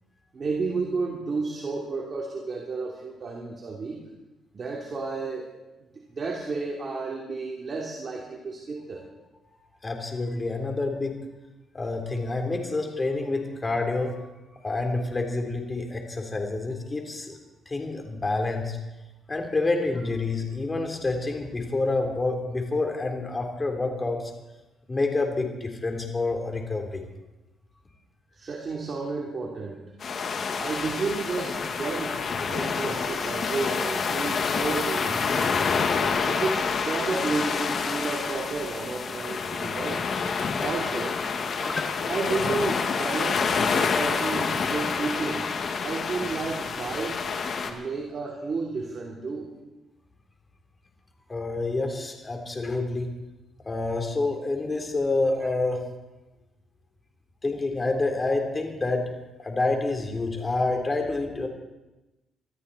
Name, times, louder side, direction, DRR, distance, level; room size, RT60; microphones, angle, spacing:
voice 1, 0.3-4.0 4.5-5.5 5.9-9.0 28.3-29.8 30.6-32.2 32.5-35.6 36.2-40.1 40.6-41.2 42.1-45.5 45.8-47.2 47.6-49.5 55.4-55.5, right 4 dB, 45° right, -2 dB, 3.1 m, -32 dB
voice 2, 9.8-11.2 11.7-14.3 14.6-17.4 17.7-18.8 19.3-24.3 24.9-27.0 41.6-41.9 51.3-53.1 53.7-55.8 57.4-59.0 59.4-61.5, left 3 dB, 25° left, 3 dB, 3.6 m, -28 dB
sound 1, 30.0-47.7, left 5 dB, 55° left, 2.0 m, -28 dB
24.5 x 13.5 x 4.2 m, 1.1 s
cardioid pair, 90°, 0 cm